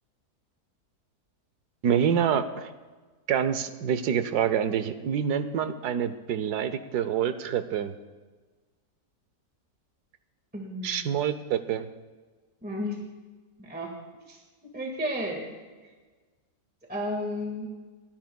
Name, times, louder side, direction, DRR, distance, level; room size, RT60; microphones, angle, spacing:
voice 1, 1.8-2.7 3.3-7.9 10.8-11.9, right 8 dB, 85° right, 11 dB, 1.3 m, -27 dB
voice 2, 10.5-11.1 12.6-13.0 13.6-13.9 14.3-14.4 14.7-15.4 16.9-17.7, equal, 5° right, 0 dB, 1.6 m, -32 dB
29.5 x 10.5 x 2.3 m, 1.3 s
omnidirectional pair, 1.7 m